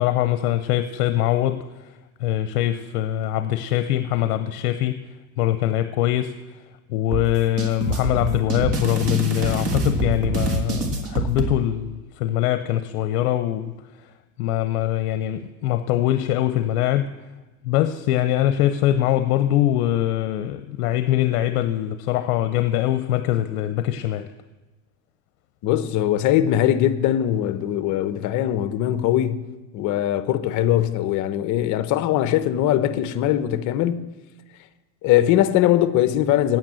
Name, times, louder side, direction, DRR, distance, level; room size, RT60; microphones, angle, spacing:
voice 1, 0.0-1.6 2.2-5.0 5.4-6.4 6.9-14.1 14.4-17.1 17.6-24.3, left 13 dB, 70° left, 0.7 m, -23 dB
sound 1, 7.1-11.5, right 2 dB, 30° right, 1.7 m, -25 dB
voice 2, 25.6-29.5 29.7-34.0 35.0-36.6, left 12 dB, 40° left, 0.8 m, -21 dB
9.1 x 9.0 x 7.6 m
supercardioid pair, 130°, 46 cm